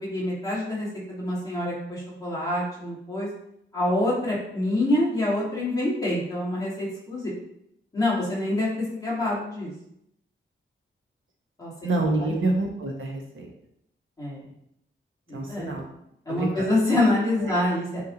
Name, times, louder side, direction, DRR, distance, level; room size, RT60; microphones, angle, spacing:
voice 1, 0.0-3.3 3.7-7.3 7.9-8.7 8.9-9.7 11.6-11.7 12.2-12.5 14.2-14.4 15.3-15.8 16.3-18.0, left 1 dB, 15° left, -7 dB, 2.7 m, -26 dB
voice 2, 11.8-13.5 15.3-15.8 16.3-16.7 17.4-17.6, right 2 dB, 70° right, 0 dB, 1.3 m, -27 dB
8.6 x 3.6 x 3.9 m, 0.76 s
wide cardioid pair, 180°, 21 cm